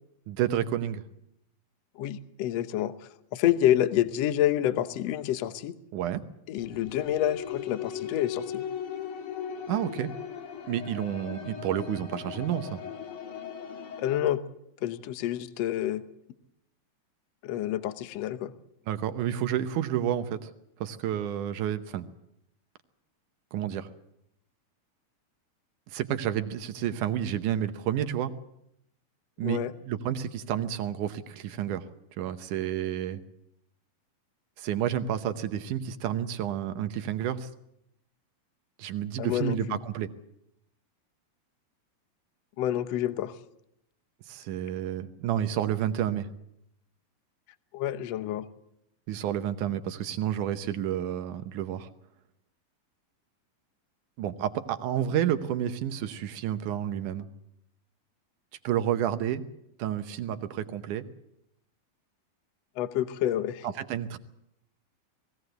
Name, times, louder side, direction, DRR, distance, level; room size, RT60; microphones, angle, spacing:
voice 1, 0.3-1.0 5.9-6.2 9.7-10.1 10.7-12.8 18.9-20.5 20.8-22.1 23.5-23.9 25.9-28.3 29.4-29.6 29.9-31.9 32.2-33.2 34.6-37.5 38.8-40.1 44.3-46.3 49.1-51.9 54.2-57.3 58.6-59.4 59.8-61.1 63.6-64.2, right 10 dB, 70° right, 10 dB, 2.2 m, -30 dB
voice 2, 2.0-5.7 6.5-8.7 14.0-14.4 14.8-16.0 17.4-18.5 29.4-29.7 39.2-39.8 42.6-43.3 47.7-48.4 62.8-63.7, left 12 dB, 80° left, 12 dB, 1.5 m, -28 dB
sound 1, 6.6-14.2, left 8 dB, 50° left, 2.0 m, -38 dB
21.0 x 16.5 x 8.0 m, 0.80 s
omnidirectional pair, 4.2 m